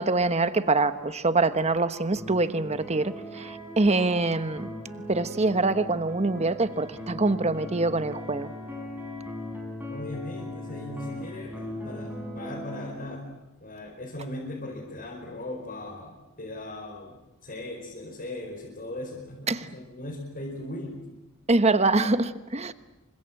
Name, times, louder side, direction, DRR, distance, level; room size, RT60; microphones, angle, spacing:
voice 1, 0.0-4.7 5.1-8.5 19.5-19.7 21.5-22.7, right 3 dB, 30° right, 12 dB, 1.1 m, -24 dB
sound 1, 2.2-12.9, equal, 10° right, 6.1 m, -39 dB
voice 2, 9.9-13.3 13.6-21.1, left 1 dB, 40° left, -3 dB, 5.3 m, -38 dB
28.5 x 25.5 x 7.8 m, 1.0 s
head